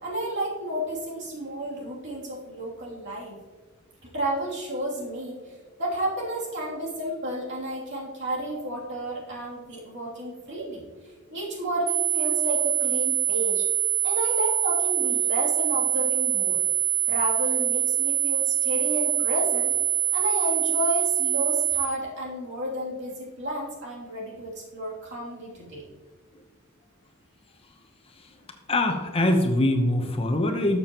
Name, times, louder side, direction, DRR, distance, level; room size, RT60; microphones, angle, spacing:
voice 1, 0.0-3.3 4.0-5.4 5.8-10.8 11.3-13.7 14.0-16.6 17.1-19.8 20.1-25.9, right 1 dB, 60° right, -4 dB, 2.8 m, -31 dB
sound 1, 11.9-21.9, right 12 dB, 40° right, 0.8 m, -24 dB
voice 2, 28.7-30.8, left 1 dB, 25° left, 4 dB, 0.9 m, -23 dB
13.0 x 6.9 x 3.0 m, 1.4 s
head